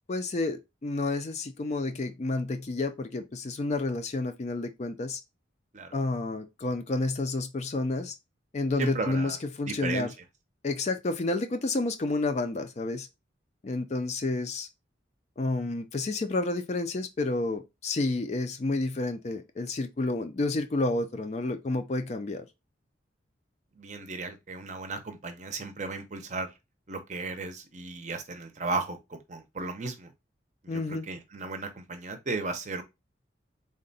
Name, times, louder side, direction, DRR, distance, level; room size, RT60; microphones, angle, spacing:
voice 1, 0.1-5.2 5.9-8.1 8.5-10.1 10.6-13.1 13.6-14.7 15.4-22.4 30.7-31.1, left 2 dB, 35° left, 0.4 m, -30 dB
voice 2, 8.8-9.4 9.7-10.1 23.7-26.5 26.9-30.1 30.6-32.8, right 3 dB, 40° right, 0.6 m, -35 dB
3.7 x 2.2 x 3.9 m
head